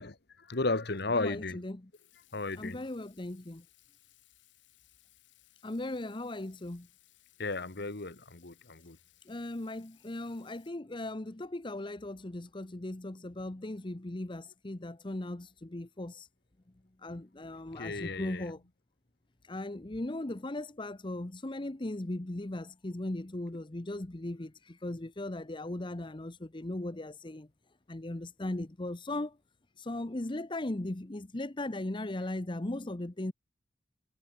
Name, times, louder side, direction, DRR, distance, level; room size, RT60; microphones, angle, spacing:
voice 1, 0.0-1.7 2.3-2.8 7.4-9.0 17.7-18.6, left 3 dB, 60° left, 1.5 m, -34 dB
voice 2, 1.1-1.8 2.6-3.6 5.6-6.9 9.3-16.3 17.0-18.6 19.4-27.5 27.9-29.4 29.8-33.3, left 1 dB, 25° left, 0.9 m, -38 dB
Water tap faucet / Sink (filling or washing), 1.9-10.7, left 15 dB, 90° left, 7.0 m, -65 dB
head